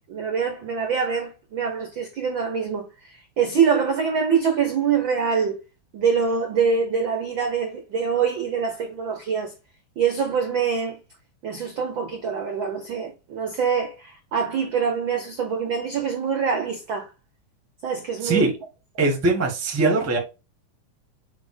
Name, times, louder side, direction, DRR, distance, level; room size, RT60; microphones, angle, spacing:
voice 1, 0.1-2.9 3.4-5.6 5.9-9.5 10.0-11.0 11.4-17.1 17.8-18.5, right 6 dB, 70° right, 1.1 m, -24 dB
voice 2, 18.2-18.5 19.0-20.2, right 3 dB, 10° right, 0.6 m, -21 dB
7.7 x 2.8 x 5.0 m
omnidirectional pair, 3.5 m